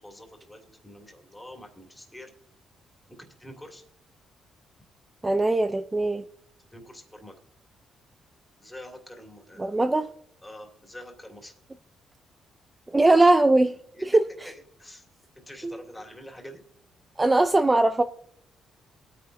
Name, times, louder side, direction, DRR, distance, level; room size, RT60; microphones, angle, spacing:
voice 1, 0.0-2.3 3.1-3.8 6.7-7.4 8.6-9.8 10.4-11.5 13.9-14.0 14.4-15.1 15.3-16.6, left 1 dB, 10° left, 2.6 m, -46 dB
voice 2, 5.2-6.2 9.6-10.1 12.9-14.5 15.6-15.7 17.2-18.0, right 2 dB, 20° right, 0.5 m, -21 dB
22.0 x 9.1 x 2.6 m
cardioid pair, 90°, 0 cm